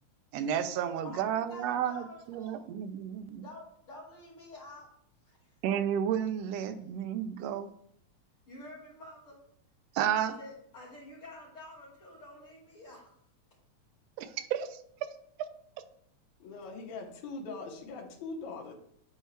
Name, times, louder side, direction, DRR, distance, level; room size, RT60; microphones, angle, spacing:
voice 1, 0.3-3.4 5.6-7.7 9.9-10.3 14.2-15.1, right 9 dB, 80° right, 9 dB, 1.5 m, -32 dB
voice 2, 1.0-2.7 3.4-4.9 5.2-5.4 8.5-9.4 10.2-13.2, left 2 dB, 45° left, -8 dB, 3.5 m, -49 dB
voice 3, 16.4-18.7, left 3 dB, 75° left, -1 dB, 2.6 m, -41 dB
11.0 x 4.3 x 3.3 m, 0.70 s
omnidirectional pair, 3.4 m